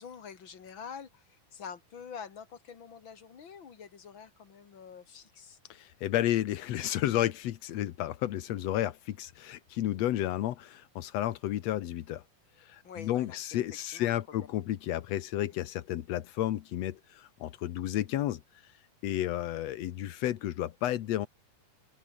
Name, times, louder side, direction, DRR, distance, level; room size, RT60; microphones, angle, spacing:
voice 1, 0.0-5.6 12.8-13.6 13.8-14.6, left 7 dB, 35° left, 2.4 m, -46 dB
voice 2, 5.7-12.2 12.6-18.7 19.0-21.3, left 13 dB, 75° left, 1.5 m, -32 dB
open air
omnidirectional pair, 4.4 m